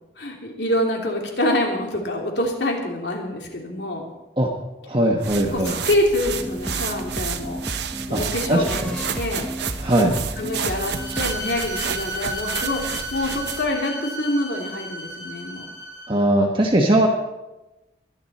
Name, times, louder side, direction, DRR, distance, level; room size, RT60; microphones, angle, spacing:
voice 1, 0.2-4.1 5.3-7.6 8.1-9.5 10.4-15.7, left 1 dB, 65° left, 1 dB, 2.9 m, -26 dB
voice 2, 4.9-5.7 8.1-8.9 9.8-10.2 16.1-17.1, right 1 dB, 25° right, 0 dB, 1.3 m, -20 dB
sound 1, 5.2-13.8, right 7 dB, 65° right, 0.9 m, -31 dB
sound 2, 6.2-11.4, equal, 5° left, 0.9 m, -33 dB
Bowed string instrument, 10.7-16.2, left 1 dB, 40° left, 5.1 m, -34 dB
23.0 x 10.5 x 4.3 m, 1.0 s
head